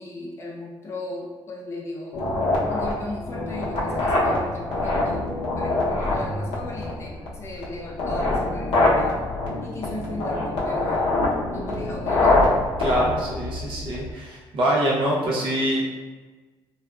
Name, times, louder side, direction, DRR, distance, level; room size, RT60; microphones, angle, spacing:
voice 1, 0.0-2.3 2.7-5.2 5.6-9.2 9.6-11.2 11.5-12.5, left 2 dB, 30° left, -3 dB, 0.5 m, -37 dB
sound 1, 2.1-14.1, left 2 dB, 70° left, 0.6 m, -24 dB
voice 2, 12.8-15.8, right 1 dB, 60° right, -4 dB, 0.7 m, -24 dB
2.5 x 2.2 x 2.2 m, 1.3 s
cardioid pair, 155°, 10 cm